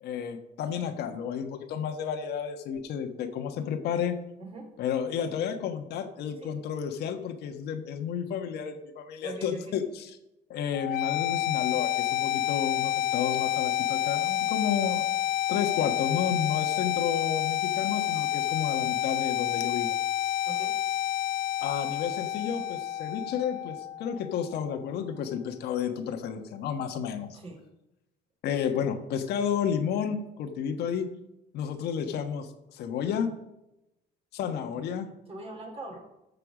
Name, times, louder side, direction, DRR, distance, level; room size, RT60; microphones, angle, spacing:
voice 1, 0.0-4.2 4.8-10.2 10.5-15.1 15.5-19.9 21.6-27.4 28.4-31.1 31.5-33.3 34.3-35.1, left 8 dB, 75° left, 6 dB, 1.3 m, -31 dB
voice 2, 9.2-9.8 20.5-20.7 27.3-27.6 35.3-36.0, right 1 dB, 35° right, 1 dB, 3.9 m, -41 dB
sound 1, 10.7-24.7, left 12 dB, 60° left, 0.4 m, -29 dB
13.5 x 6.7 x 5.0 m, 0.90 s
cardioid pair, 110°, 17 cm